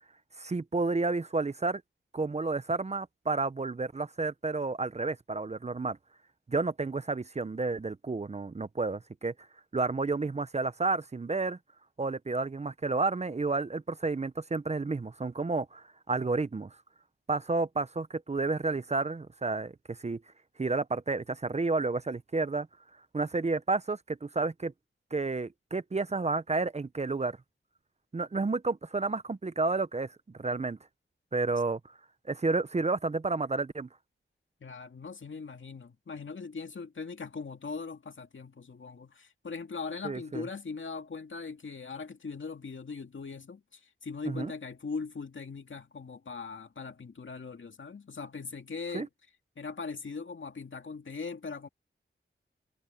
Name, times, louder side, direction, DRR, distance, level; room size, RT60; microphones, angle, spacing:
voice 1, 0.4-1.8 2.1-6.0 6.5-9.3 9.7-11.6 12.0-16.7 17.3-20.2 20.6-22.7 23.1-24.7 25.1-27.4 28.1-30.8 31.3-31.8 32.3-33.9 40.0-40.4 44.3-44.5 48.9-49.1, right 3 dB, 30° right, 0.6 m, -31 dB
voice 2, 34.6-49.1 49.6-51.7, left 4 dB, 65° left, 2.3 m, -40 dB
wide cardioid pair, 70°, 21 cm